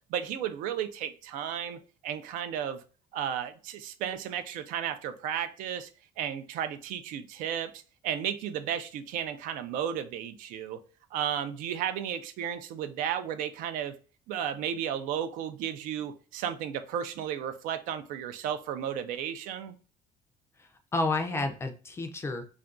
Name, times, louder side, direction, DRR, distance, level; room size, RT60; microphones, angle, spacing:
voice 1, 0.1-2.8 3.1-5.9 6.2-10.8 11.1-14.0 14.3-19.8, right 9 dB, 75° right, 0.4 m, -34 dB
voice 2, 20.6-22.4, left 2 dB, 20° left, 0.4 m, -31 dB
2.4 x 2.2 x 3.6 m
cardioid pair, 155°, 14 cm